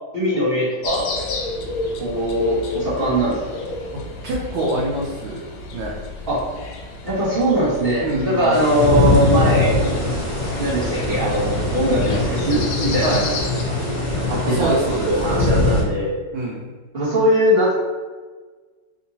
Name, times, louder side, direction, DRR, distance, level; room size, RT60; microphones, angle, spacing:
voice 1, 0.1-1.1 2.0-3.4 6.3-6.4 7.0-9.8 10.6-13.4 14.3-16.1 16.9-17.7, equal, 50° right, -8 dB, 0.6 m, -20 dB
sound 1, 0.8-13.6, left 2 dB, 80° left, 1.3 m, -31 dB
voice 2, 4.2-5.4 5.7-5.9 8.0-8.8 13.0-13.3 14.5-15.1 16.3-16.7, right 1 dB, 75° right, -3 dB, 1.3 m, -25 dB
sound 2, 8.5-15.8, left 2 dB, 35° left, 1.0 m, -22 dB
3.6 x 2.7 x 2.7 m, 1.4 s
omnidirectional pair, 2.2 m